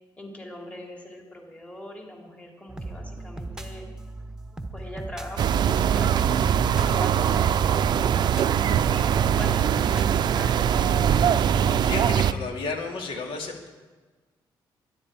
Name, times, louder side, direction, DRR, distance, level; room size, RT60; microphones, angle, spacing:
voice 1, 0.2-3.8 4.7-11.5, left 1 dB, 15° left, 0 dB, 2.6 m, -41 dB
sound 1, 2.7-10.3, right 2 dB, 5° right, 1.0 m, -39 dB
sound 2, 5.4-12.3, right 9 dB, 55° right, 0.5 m, -22 dB
voice 2, 11.8-13.7, left 4 dB, 80° left, 2 dB, 2.6 m, -32 dB
22.5 x 11.0 x 4.8 m, 1.3 s
cardioid pair, 160°, 9 cm